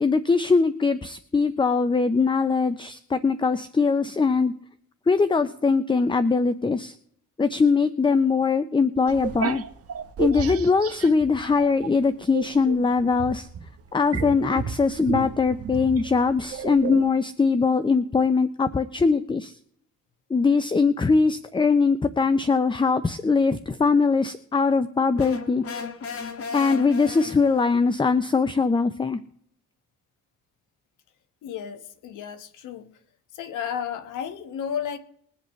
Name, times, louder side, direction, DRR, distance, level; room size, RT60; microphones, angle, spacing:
voice 1, 0.0-4.5 5.1-6.9 7.4-9.6 10.2-13.5 13.9-19.5 20.3-25.6 26.5-29.2, left 4 dB, 15° left, 0.6 m, -21 dB
sound 1, 9.1-11.9 12.3-17.1, right 7 dB, 50° right, 1.3 m, -32 dB
sound 2, 25.2-27.8, left 5 dB, 50° left, 1.8 m, -35 dB
voice 2, 31.4-32.9 33.3-35.0, left 8 dB, 85° left, 1.4 m, -33 dB
22.0 x 7.9 x 3.2 m
cardioid pair, 90°, 30 cm